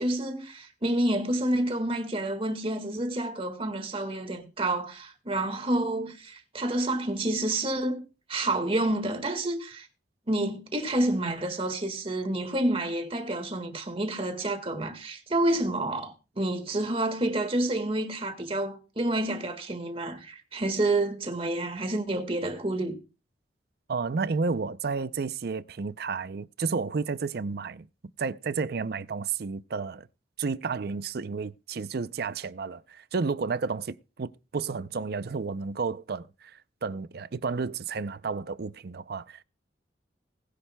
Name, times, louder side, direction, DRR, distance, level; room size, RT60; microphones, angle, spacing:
voice 1, 0.0-8.0 8.3-9.9 10.3-23.0, right 1 dB, 35° right, 1.7 m, -29 dB
voice 2, 23.9-27.9 28.2-30.1 30.4-39.4, right 4 dB, 60° right, 0.5 m, -31 dB
20.0 x 10.0 x 2.2 m
head